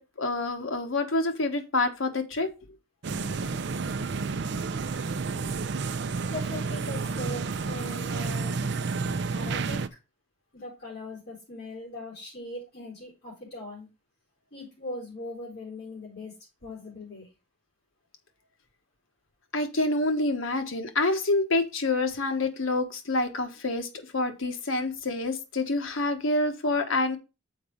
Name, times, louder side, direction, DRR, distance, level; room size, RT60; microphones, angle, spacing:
voice 1, 0.0-2.5 5.4-5.5 19.5-27.2, left 2 dB, 80° left, 6 dB, 1.3 m, -27 dB
sound 1, 3.0-9.9, right 4 dB, 55° right, 0.5 m, -30 dB
voice 2, 6.3-8.6 9.3-9.8 10.5-13.9 14.5-16.3 16.6-17.3, left 2 dB, 50° left, -7 dB, 5.7 m, -40 dB
7.1 x 4.8 x 5.1 m, 0.28 s
head